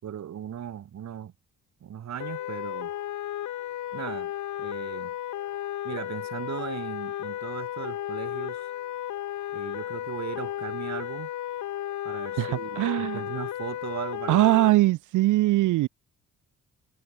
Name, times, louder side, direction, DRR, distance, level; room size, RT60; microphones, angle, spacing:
voice 1, 0.0-1.3 1.8-2.9 3.9-4.3 4.6-5.1 5.8-8.7 9.5-11.3 12.0-14.4, right 9 dB, 60° right, 4.4 m, -37 dB
sound 1, 2.2-14.7, left 12 dB, 75° left, 4.1 m, -34 dB
voice 2, 12.4-13.2 14.3-15.9, right 17 dB, 85° right, 0.9 m, -22 dB
cardioid pair, 90°, 30 cm